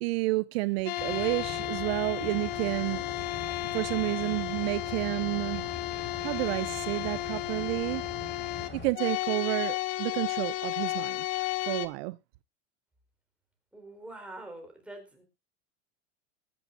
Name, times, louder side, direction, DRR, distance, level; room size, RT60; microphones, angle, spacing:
voice 1, 0.0-3.0 3.7-5.7 5.9-8.0 8.7-11.2 11.7-12.2, right 21 dB, 65° right, 0.6 m, -30 dB
sound 1, 0.9-11.9, left 16 dB, 65° left, 1.5 m, -33 dB
sound 2, 1.0-8.9, left 4 dB, 30° left, 4.3 m, -42 dB
voice 2, 13.7-15.2, right 2 dB, 5° right, 4.1 m, -45 dB
21.5 x 8.4 x 2.5 m
supercardioid pair, 125°, 33 cm